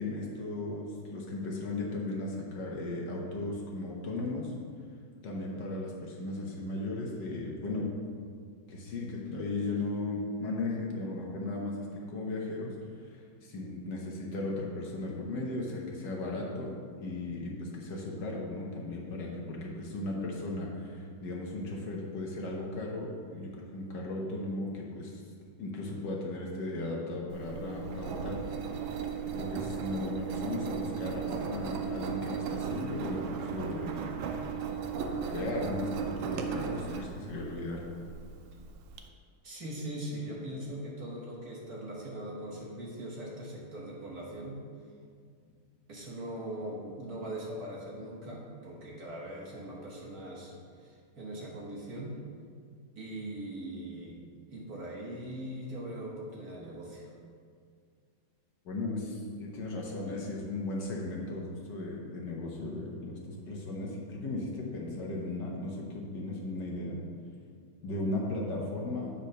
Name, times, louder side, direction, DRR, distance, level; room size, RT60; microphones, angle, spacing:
voice 1, 0.0-4.5 5.2-7.9 8.7-12.8 13.0-25.2 25.6-28.9 29.3-34.0 35.2-37.8 58.6-67.0 67.8-69.1, left 2 dB, 65° left, -2 dB, 1.5 m, -36 dB
Engine, 27.3-39.0, right 7 dB, 80° right, 1.4 m, -36 dB
voice 2, 39.4-44.6 45.9-52.2 53.0-54.2 54.5-57.1, right 1 dB, 50° right, -3 dB, 1.5 m, -41 dB
8.1 x 4.4 x 5.2 m, 2.1 s
omnidirectional pair, 2.2 m